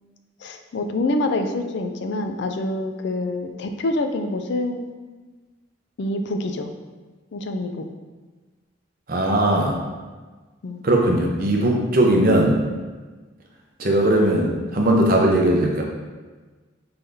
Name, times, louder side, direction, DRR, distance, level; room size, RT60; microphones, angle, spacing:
voice 1, 0.4-4.9 6.0-6.7 7.3-7.9 10.6-10.8, left 2 dB, 55° left, 6 dB, 0.4 m, -26 dB
voice 2, 9.1-9.8 10.8-12.5 13.8-15.8, right 1 dB, 45° right, 0 dB, 0.7 m, -19 dB
5.6 x 3.4 x 2.7 m, 1.3 s
head